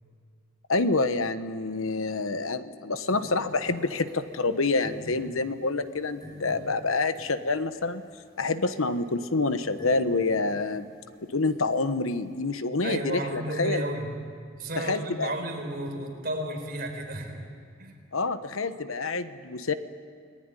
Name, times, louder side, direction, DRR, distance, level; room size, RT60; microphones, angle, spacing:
voice 1, 0.7-8.0 8.4-10.9 11.3-13.8 14.8-15.3 18.1-19.7, left 3 dB, 85° left, 11 dB, 1.2 m, -27 dB
sound 1, 2.9-12.5, equal, 20° left, 5.8 m, -48 dB
voice 2, 12.8-14.1 14.5-17.4 17.8-17.9, right 1 dB, 45° right, 3 dB, 4.4 m, -33 dB
29.0 x 20.0 x 9.9 m, 2.1 s
head